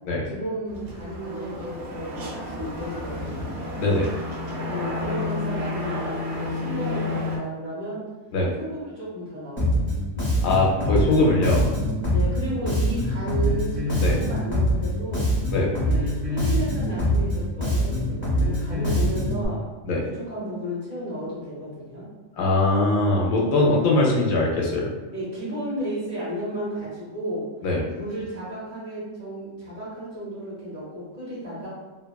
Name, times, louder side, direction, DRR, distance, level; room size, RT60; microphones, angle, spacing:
voice 1, 0.2-3.5 4.7-8.0 8.6-10.0 12.1-15.3 15.8-19.8 20.2-22.1 25.1-27.5 27.9-31.7, right 1 dB, 45° right, -9 dB, 1.2 m, -33 dB
sound 1, 0.7-7.4, left 2 dB, 65° right, 0.8 m, -31 dB
voice 2, 3.8-4.1 8.3-8.5 10.4-11.6 14.0-14.2 15.5-15.7 19.9-20.0 22.4-24.9 27.6-27.8, left 2 dB, 85° left, -2 dB, 1.0 m, -21 dB
Bass guitar, 9.6-19.5, equal, 20° left, 0.8 m, -24 dB
2.8 x 2.2 x 2.2 m, 1.2 s
omnidirectional pair, 1.4 m